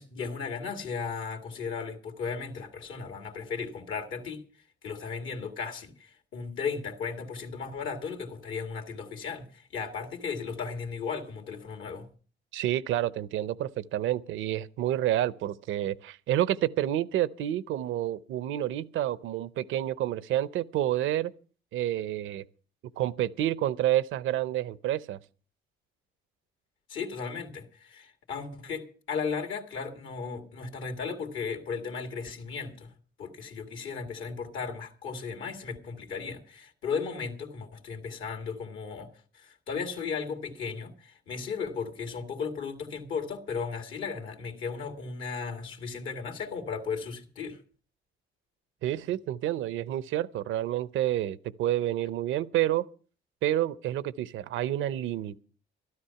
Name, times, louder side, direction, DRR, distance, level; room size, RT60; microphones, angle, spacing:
voice 1, 0.0-4.4 4.8-12.1 26.9-32.9 33.2-39.1 39.3-47.6, left 5 dB, 80° left, 2.2 m, -35 dB
voice 2, 12.5-21.3 21.7-22.4 23.0-25.2 48.8-52.9 53.4-55.4, right 13 dB, 80° right, 0.7 m, -29 dB
13.0 x 13.0 x 5.8 m
cardioid pair, 90°, 20 cm